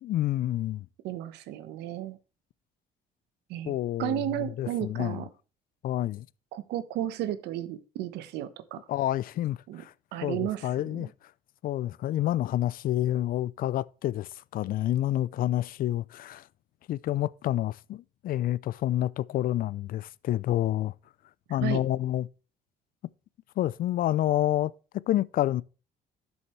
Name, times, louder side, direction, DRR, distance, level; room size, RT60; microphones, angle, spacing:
voice 1, 0.0-0.9 3.6-4.2 4.6-5.2 5.8-6.3 8.9-9.9 10.2-11.1 11.6-16.4 16.9-20.9 21.5-22.3 23.6-24.7 25.1-25.6, left 13 dB, 55° left, 0.5 m, -28 dB
voice 2, 1.0-2.2 3.5-3.7 4.0-5.3 6.5-8.9 9.7-9.8 10.1-11.1 21.6-21.8, right 13 dB, 85° right, 1.2 m, -33 dB
12.5 x 7.1 x 3.2 m
cardioid pair, 110°, 17 cm